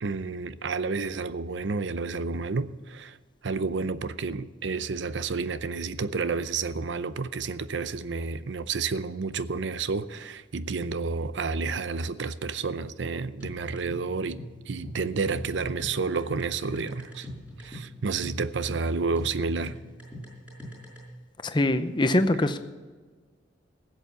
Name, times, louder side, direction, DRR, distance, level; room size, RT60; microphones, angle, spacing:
voice 1, 0.0-3.2 3.4-17.3 17.6-19.8, right 4 dB, 75° right, 0.6 m, -30 dB
sound 1, 13.4-21.0, left 1 dB, 10° right, 5.0 m, -42 dB
voice 2, 21.4-22.6, left 1 dB, 25° left, 0.7 m, -23 dB
15.5 x 7.9 x 6.8 m
head